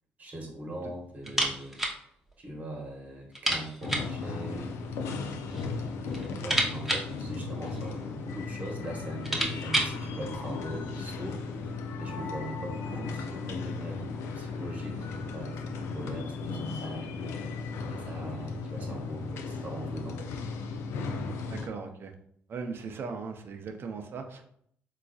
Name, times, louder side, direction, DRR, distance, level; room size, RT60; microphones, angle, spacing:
voice 1, 0.2-5.1 5.4-17.2 17.9-20.2, right 1 dB, 35° right, 0 dB, 1.0 m, -41 dB
sound 1, 1.2-2.0 2.3-2.4 2.7-2.8 3.3-4.2 5.1-5.7 6.0-8.0 8.7-8.8 9.1-10.0, right 1 dB, 5° right, 0.8 m, -31 dB
sound 2, 3.8-21.7, left 4 dB, 75° left, 0.4 m, -36 dB
voice 2, 21.5-22.1 22.5-24.4, right 5 dB, 55° right, 6 dB, 0.5 m, -38 dB
3.9 x 2.4 x 2.3 m, 0.66 s
supercardioid pair, 65°, 5 cm